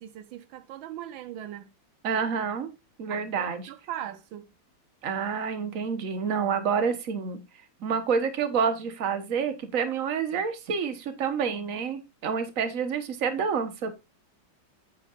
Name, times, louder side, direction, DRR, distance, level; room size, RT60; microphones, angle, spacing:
voice 1, 0.0-1.7 3.1-4.5 7.8-7.9, right 11 dB, 85° right, 1.4 m, -40 dB
voice 2, 2.0-2.7 3.0-3.7 5.0-7.4 7.8-13.9, right 6 dB, 45° right, 1.5 m, -28 dB
9.4 x 8.3 x 2.5 m
omnidirectional pair, 2.1 m